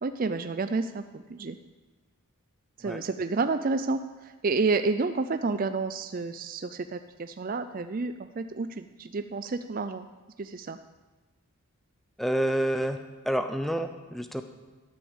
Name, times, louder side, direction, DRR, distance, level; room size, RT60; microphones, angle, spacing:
voice 1, 0.0-1.6 2.8-10.1 10.4-10.8, right 3 dB, 40° right, 9 dB, 0.4 m, -30 dB
voice 2, 12.2-13.0 13.2-14.4, right 1 dB, ahead, 8 dB, 0.7 m, -28 dB
13.5 x 9.3 x 7.2 m, 1.2 s
head